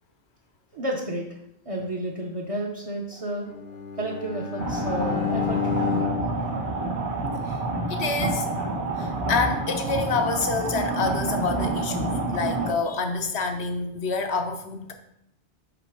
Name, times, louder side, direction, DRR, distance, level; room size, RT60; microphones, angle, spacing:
voice 1, 0.7-1.4 1.7-3.5 4.0-6.0, right 1 dB, 35° right, -1 dB, 0.8 m, -31 dB
Bowed string instrument, 3.5-7.7, left 8 dB, 70° left, 0.8 m, -31 dB
sound 1, 4.6-12.7, right 2 dB, 80° right, 1.4 m, -28 dB
voice 2, 7.9-8.5 9.0-14.9, left 4 dB, 85° left, 6 dB, 1.1 m, -27 dB
5.1 x 4.1 x 5.9 m, 0.78 s
omnidirectional pair, 1.1 m